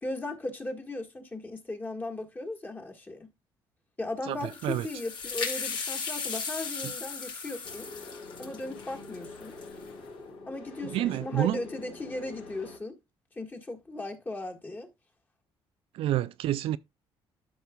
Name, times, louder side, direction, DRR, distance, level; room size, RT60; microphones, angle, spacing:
voice 1, 0.0-3.3 4.0-7.9 8.4-9.6 10.5-13.0 13.3-14.9, left 2 dB, 20° left, 1.6 m, -37 dB
sound 1, 4.4-9.9, left 5 dB, 55° left, 3.2 m, -36 dB
sound 2, 7.6-12.8, left 3 dB, 80° left, 2.8 m, -45 dB
voice 2, 10.9-11.6 15.9-16.8, right 13 dB, 70° right, 0.4 m, -28 dB
12.5 x 5.3 x 2.3 m
cardioid pair, 110°, 10 cm